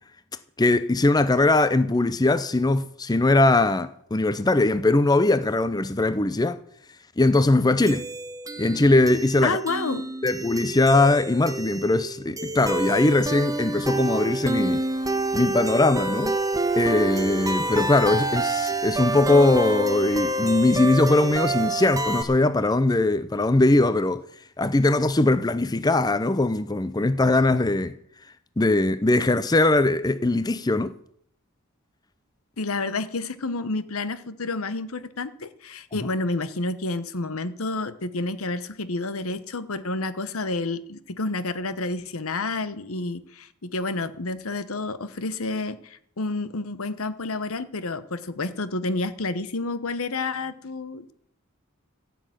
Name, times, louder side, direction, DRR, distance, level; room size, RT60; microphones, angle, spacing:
voice 1, 0.6-6.6 7.2-8.1 8.6-9.6 10.2-14.8 15.3-16.4 16.8-24.2 24.6-27.9 28.6-30.9, left 2 dB, 20° left, 0.5 m, -21 dB
sound 1, 7.9-22.2, right 2 dB, 15° right, 1.1 m, -28 dB
voice 2, 9.4-10.1 32.6-51.1, left 3 dB, 75° left, 1.0 m, -29 dB
15.0 x 6.9 x 9.1 m
head